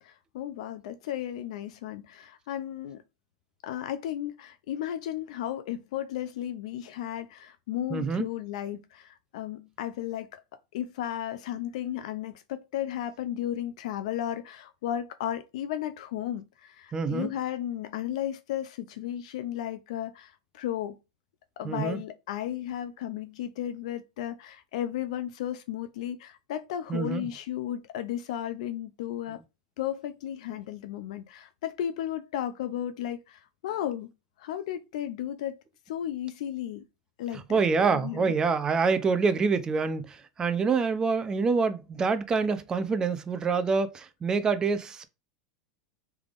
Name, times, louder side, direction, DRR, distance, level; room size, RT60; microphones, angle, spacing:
voice 1, 0.0-3.0 3.6-10.4 10.7-21.0 21.6-29.4 29.8-34.1 34.4-36.9 37.2-38.4, left 11 dB, 75° left, 0.4 m, -34 dB
voice 2, 7.9-8.3 16.9-17.3 21.6-22.0 26.9-27.3 37.5-45.0, right 5 dB, 20° right, 0.5 m, -26 dB
3.4 x 3.3 x 2.5 m
supercardioid pair, 130°, 4 cm